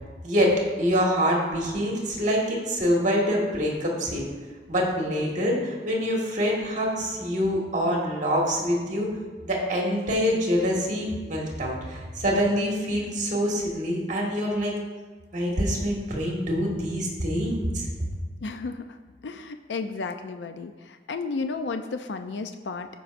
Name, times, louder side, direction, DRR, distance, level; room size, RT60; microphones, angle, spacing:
voice 1, 0.2-4.2 4.7-9.1 9.4-14.7 15.3-17.9, equal, 45° right, -2 dB, 1.7 m, -25 dB
voice 2, 18.4-19.0 19.2-22.9, left 4 dB, 80° left, 7 dB, 0.5 m, -33 dB
14.5 x 5.4 x 2.6 m, 1.4 s
head